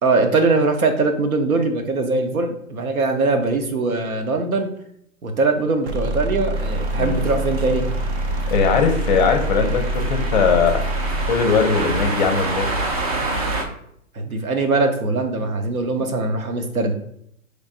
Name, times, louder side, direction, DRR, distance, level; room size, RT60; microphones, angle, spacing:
voice 1, 0.0-4.7 5.2-7.9 14.1-16.9, right 3 dB, 80° right, 5 dB, 0.9 m, -21 dB
sound 1, 5.9-11.4, right 1 dB, 50° right, 0.8 m, -25 dB
sound 2, 6.5-13.6, right 2 dB, 30° right, 0.4 m, -28 dB
voice 2, 8.5-12.7, left 5 dB, 35° left, 4 dB, 0.6 m, -20 dB
5.2 x 3.3 x 2.5 m, 0.71 s
hypercardioid pair, 130°, 42 cm